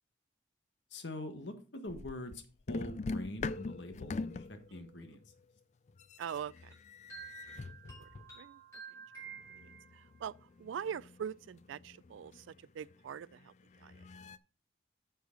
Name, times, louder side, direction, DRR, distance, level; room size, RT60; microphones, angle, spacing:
voice 1, 0.9-5.3, left 1 dB, 70° left, 1.5 m, -44 dB
sound 1, 1.9-2.4 2.7-5.4 5.9-8.4 9.3-14.4, left 3 dB, 35° left, 0.3 m, -44 dB
voice 2, 4.7-5.2 6.2-6.8 7.8-8.1 8.4-8.6 8.9-9.0 9.5-9.6 9.9-14.0, right 8 dB, 90° right, 0.3 m, -43 dB
sound 2, 6.7-10.2, right 6 dB, 15° left, 5.2 m, -51 dB
9.6 x 6.6 x 3.8 m
head